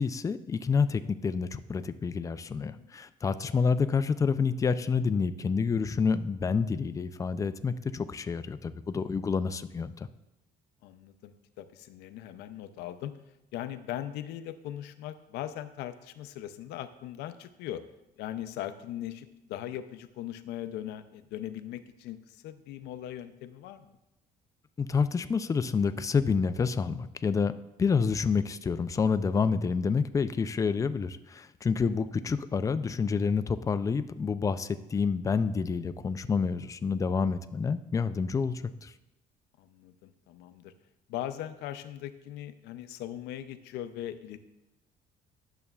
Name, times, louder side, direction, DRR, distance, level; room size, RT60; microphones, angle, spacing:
voice 1, 0.0-10.1 24.8-27.5 27.8-38.9, left 5 dB, 20° left, 12 dB, 0.3 m, -28 dB
voice 2, 2.4-2.9 3.4-3.6 10.8-13.1 13.5-17.8 18.2-23.9 39.6-40.7 41.1-44.4, left 12 dB, 85° left, 11 dB, 0.5 m, -40 dB
11.0 x 6.8 x 2.3 m, 0.93 s
cardioid pair, 110°, 17 cm